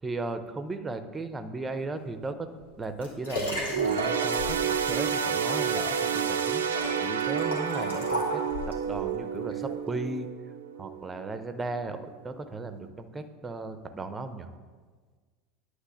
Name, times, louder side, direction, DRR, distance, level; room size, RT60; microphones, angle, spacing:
voice 1, 0.0-2.5 2.8-6.6 7.0-10.3 10.8-12.0 12.2-14.5, right 3 dB, 20° right, 9 dB, 0.6 m, -36 dB
Liquid, 2.6-8.9 9.5-9.6, left 1 dB, 75° left, 1.4 m, -36 dB
sound 1, 3.7-11.4 11.8-12.0 12.9-13.0, right 7 dB, 75° right, 0.4 m, -29 dB
9.6 x 3.2 x 6.3 m, 1.5 s
figure-of-eight pair, 75°, 0 cm